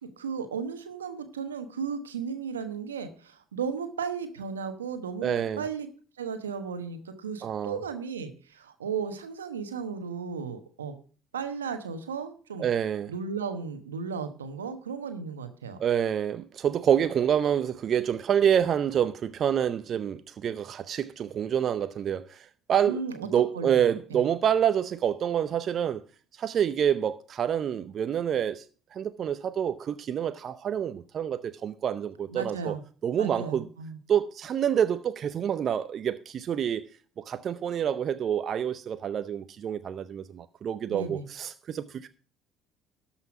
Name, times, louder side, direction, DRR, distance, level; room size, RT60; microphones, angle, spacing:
voice 1, 0.0-5.9 6.2-10.9 11.3-12.7 13.1-15.8 22.9-23.3 23.5-24.3 32.3-32.8 33.2-34.0 40.9-41.2, right 6 dB, 90° right, 1.1 m, -35 dB
voice 2, 5.2-5.6 7.4-7.8 12.6-13.1 15.8-26.0 26.4-28.6 28.9-32.7 33.0-33.7 34.1-36.9 37.2-42.1, right 9 dB, 50° right, 0.6 m, -27 dB
12.5 x 5.8 x 5.9 m
hypercardioid pair, 60°, 0 cm